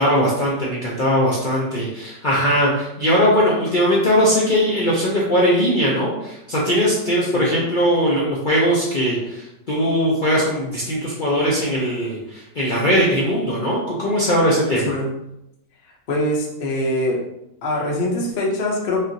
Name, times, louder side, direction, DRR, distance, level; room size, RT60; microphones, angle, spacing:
voice 1, 0.0-15.0, equal, 75° left, -5 dB, 0.4 m, -20 dB
voice 2, 16.1-17.2 17.6-19.0, left 1 dB, 45° left, -2 dB, 0.7 m, -23 dB
5.4 x 2.5 x 2.7 m, 0.85 s
omnidirectional pair, 1.8 m